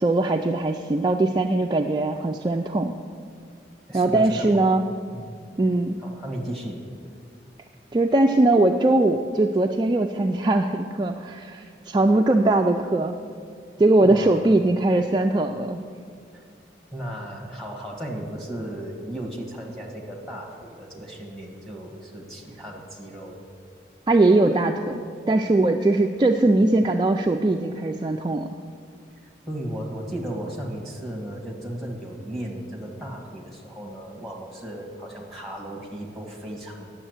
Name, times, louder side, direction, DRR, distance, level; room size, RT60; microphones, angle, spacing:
voice 1, 0.0-2.9 3.9-4.8 5.6-6.0 7.9-13.2 13.8-15.8 24.1-28.5, right 2 dB, 25° right, 3 dB, 0.3 m, -21 dB
voice 2, 3.9-4.7 5.1-5.3 6.0-6.8 14.0-14.3 16.3-16.4 16.9-23.4 29.5-36.9, right 1 dB, ahead, -1 dB, 1.6 m, -35 dB
10.0 x 7.3 x 7.8 m, 2.2 s
head